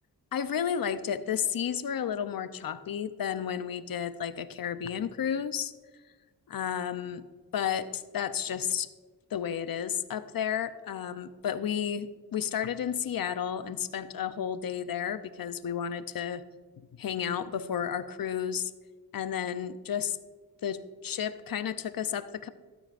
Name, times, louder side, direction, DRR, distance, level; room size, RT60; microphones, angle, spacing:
voice 1, 0.3-5.7 6.5-7.3 7.5-8.9 9.3-16.4 16.8-18.7 19.1-20.2 20.6-22.5, left 8 dB, 65° left, 13 dB, 0.7 m, -32 dB
13.5 x 12.5 x 2.5 m, 1.3 s
cardioid pair, 65°, 38 cm